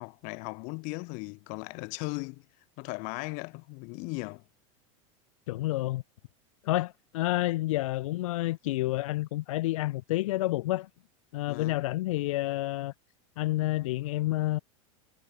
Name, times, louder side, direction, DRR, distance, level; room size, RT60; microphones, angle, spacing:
voice 1, 0.0-2.4 2.8-4.4 11.5-11.8, left 32 dB, 50° left, 1.2 m, -37 dB
voice 2, 5.5-6.0 6.6-10.9 11.3-12.9 13.4-14.6, left 17 dB, 85° left, 0.6 m, -29 dB
supercardioid pair, 150°, 17 cm